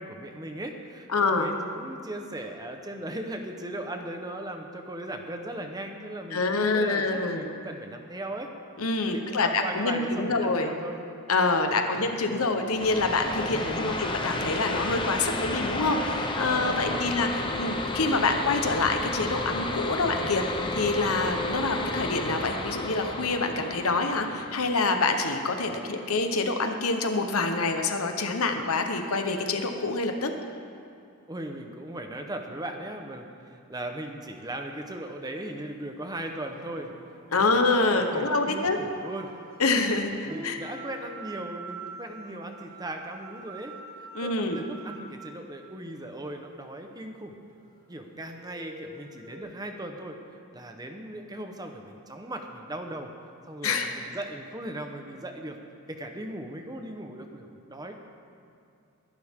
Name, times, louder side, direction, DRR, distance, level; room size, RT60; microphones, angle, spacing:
voice 1, 0.0-8.5 9.1-11.0 11.7-12.4 13.5-14.1 16.6-17.1 21.5-21.8 25.6-25.9 31.3-36.9 37.3-39.3 40.2-47.3 47.9-50.2 50.5-53.1 53.5-55.6 55.9-58.0, right 1 dB, 15° right, 4 dB, 1.0 m, -38 dB
voice 2, 1.1-1.5 6.3-7.5 8.8-10.7 11.3-30.3 37.3-38.8 39.6-40.6 44.1-44.6 53.6-53.9, left 3 dB, 75° left, 5 dB, 1.0 m, -26 dB
sound 1, 12.7-26.1, left 2 dB, 20° left, 1.0 m, -32 dB
sound 2, 36.5-45.7 48.2-49.4, right 3 dB, 40° right, 1.7 m, -46 dB
21.0 x 11.5 x 3.7 m, 2.5 s
head